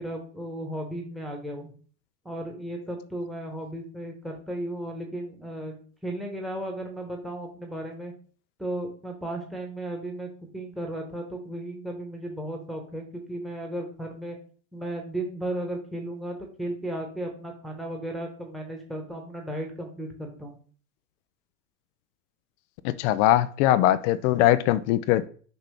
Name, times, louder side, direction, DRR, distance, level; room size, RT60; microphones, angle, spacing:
voice 1, 0.0-1.7 2.2-8.1 8.6-14.4 14.7-20.5, right 1 dB, ahead, 1 dB, 1.3 m, -35 dB
voice 2, 22.8-25.3, left 13 dB, 50° left, 13 dB, 0.5 m, -21 dB
6.0 x 5.3 x 3.4 m, 0.43 s
hypercardioid pair, 100°, 47 cm